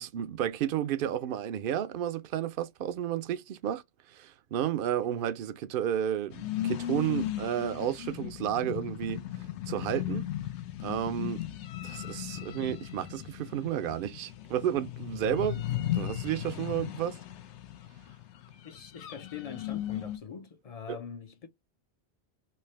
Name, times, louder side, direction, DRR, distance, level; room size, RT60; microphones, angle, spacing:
voice 1, 0.0-3.8 4.1-9.2 9.7-10.3 10.8-11.4 11.8-17.2 20.9-21.0, right 10 dB, 60° right, 0.6 m, -32 dB
sound 1, 6.3-20.2, left 12 dB, 85° left, 0.9 m, -36 dB
voice 2, 18.6-21.5, left 7 dB, 50° left, 0.5 m, -43 dB
3.3 x 2.8 x 3.1 m
omnidirectional pair, 1.1 m